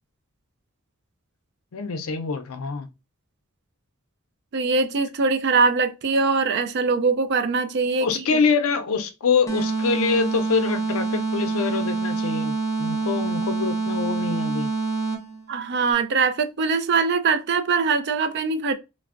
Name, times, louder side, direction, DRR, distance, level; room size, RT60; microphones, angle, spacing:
voice 1, 1.7-2.9 8.0-14.7, left 5 dB, 75° left, 0.5 m, -25 dB
voice 2, 4.5-8.1 15.5-18.7, right 4 dB, 55° right, 0.4 m, -22 dB
sound 1, 9.5-15.4, right 4 dB, 15° left, 0.5 m, -26 dB
3.3 x 2.0 x 2.4 m
head